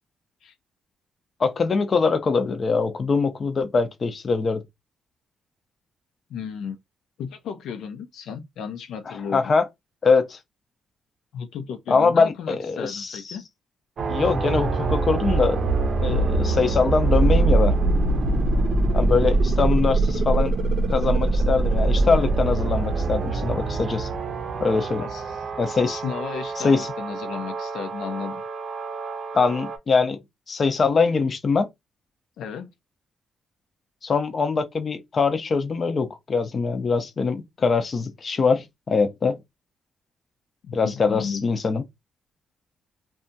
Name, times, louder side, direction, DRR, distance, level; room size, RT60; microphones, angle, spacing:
voice 1, 1.4-4.6 9.1-9.6 10.0-10.4 11.9-13.4 14.1-15.6 16.0-17.7 18.9-20.5 20.9-24.1 24.6-25.0 25.6-26.0 26.6-26.9 29.3-30.2 30.5-31.7 34.0-39.4 40.7-41.8, left 4 dB, 40° left, 0.5 m, -23 dB
voice 2, 6.3-6.8 7.2-9.5 11.3-13.4 16.1-16.3 18.8-19.2 25.0-25.4 25.9-28.4 32.4-32.7 40.6-41.5, left 7 dB, 85° left, 0.5 m, -34 dB
sound 1, 14.0-29.8, right 3 dB, 55° right, 0.5 m, -24 dB
2.7 x 2.2 x 2.6 m
cardioid pair, 120°, 0 cm